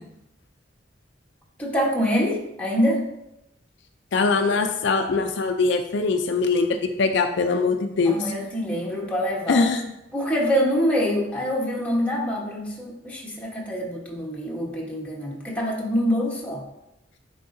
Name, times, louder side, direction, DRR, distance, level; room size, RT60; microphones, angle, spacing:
voice 1, 1.6-3.0 8.0-9.6 10.1-16.6, equal, 5° left, -3 dB, 1.1 m, -25 dB
voice 2, 4.1-8.2 9.5-9.8, left 4 dB, 65° left, 5 dB, 0.4 m, -22 dB
9.2 x 3.9 x 2.6 m, 0.89 s
head